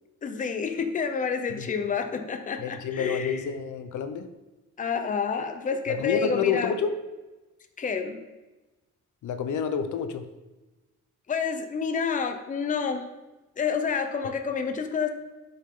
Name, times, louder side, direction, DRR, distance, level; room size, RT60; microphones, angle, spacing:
voice 1, 0.2-3.4 4.8-6.8 7.8-8.2 11.3-13.1 13.6-15.1, left 6 dB, 25° left, 6 dB, 0.7 m, -29 dB
voice 2, 2.6-4.3 5.9-6.9 9.2-10.3, left 7 dB, 70° left, 9 dB, 0.8 m, -29 dB
11.5 x 5.4 x 3.7 m, 1.1 s
cardioid pair, 135°, 31 cm